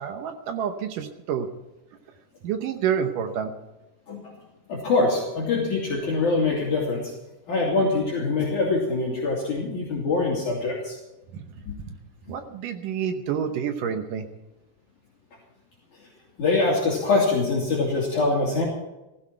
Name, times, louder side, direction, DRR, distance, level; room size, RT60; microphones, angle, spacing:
voice 1, 0.0-1.5 2.4-3.5 11.3-11.5 11.9-12.0 12.3-14.3, right 8 dB, 70° right, 7 dB, 2.1 m, -28 dB
voice 2, 4.7-7.1 7.5-11.0 11.7-11.8 16.4-18.6, left 3 dB, 50° left, -4 dB, 3.8 m, -24 dB
16.5 x 15.5 x 4.5 m, 1.0 s
omnidirectional pair, 4.7 m